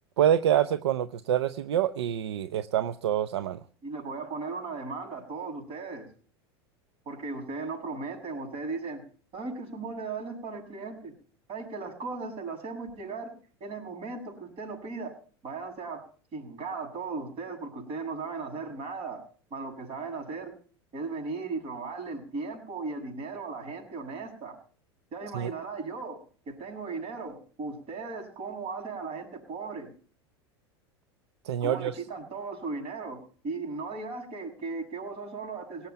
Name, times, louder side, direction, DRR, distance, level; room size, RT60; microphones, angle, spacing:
voice 1, 0.2-3.6 25.3-25.5 31.4-31.9, right 10 dB, 80° right, 12 dB, 0.7 m, -26 dB
voice 2, 3.8-6.1 7.1-9.0 9.3-11.1 11.5-13.3 13.6-15.1 15.4-16.0 16.3-19.2 19.5-20.5 20.9-24.6 25.1-26.2 26.5-29.9 31.6-35.9, right 4 dB, 45° right, 3 dB, 7.0 m, -37 dB
18.5 x 7.3 x 9.3 m, 0.43 s
hypercardioid pair, 95°, 14 cm